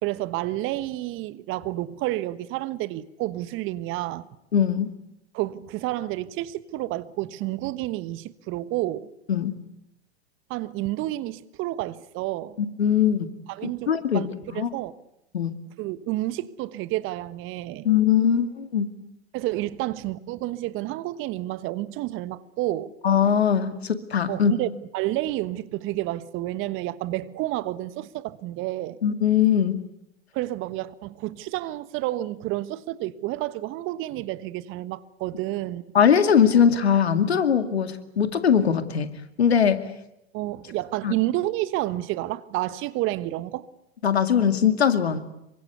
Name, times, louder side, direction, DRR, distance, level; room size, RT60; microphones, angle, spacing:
voice 1, 0.0-4.3 5.3-9.1 10.5-12.6 13.5-14.9 15.8-17.9 19.3-22.9 24.3-29.0 30.3-35.8 40.3-43.7, right 16 dB, 40° right, 1.3 m, -30 dB
voice 2, 4.5-4.9 9.3-9.6 12.6-13.3 13.9-14.7 15.3-15.5 17.8-18.9 23.0-24.5 29.0-29.8 35.9-39.1 39.4-39.8 41.0-41.1 44.0-45.2, left 8 dB, 80° left, 2.4 m, -21 dB
27.0 x 24.0 x 8.3 m
hypercardioid pair, 95°, 31 cm